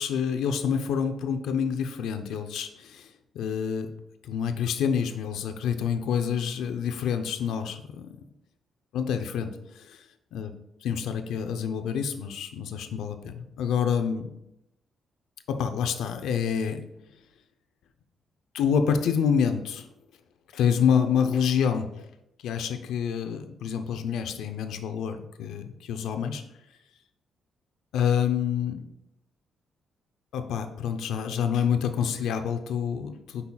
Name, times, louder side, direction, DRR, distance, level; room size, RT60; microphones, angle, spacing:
voice 1, 0.0-3.1 3.3-3.9 4.2-8.1 8.9-10.0 10.3-10.5 10.8-14.3 15.5-16.8 18.5-19.9 20.5-21.9 22.4-26.4 27.9-28.8 30.3-33.4, left 7 dB, 90° left, 7 dB, 0.6 m, -27 dB
8.3 x 5.6 x 2.3 m, 0.86 s
cardioid pair, 125°, 0 cm